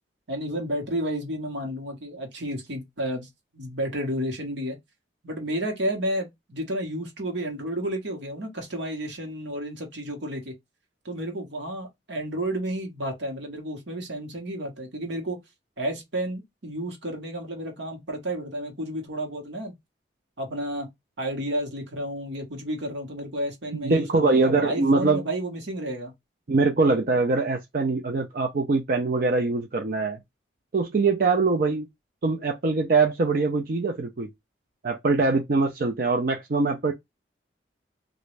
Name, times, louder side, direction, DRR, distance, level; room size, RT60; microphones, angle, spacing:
voice 1, 0.3-3.3 3.5-4.8 5.2-10.5 11.0-15.4 15.8-19.7 20.4-20.9 21.2-26.1, right 1 dB, 75° right, 1.2 m, -31 dB
voice 2, 23.8-25.2 26.5-30.2 30.7-31.9 32.2-34.3 34.8-36.9, right 3 dB, 50° right, 0.5 m, -23 dB
3.0 x 2.6 x 3.2 m
head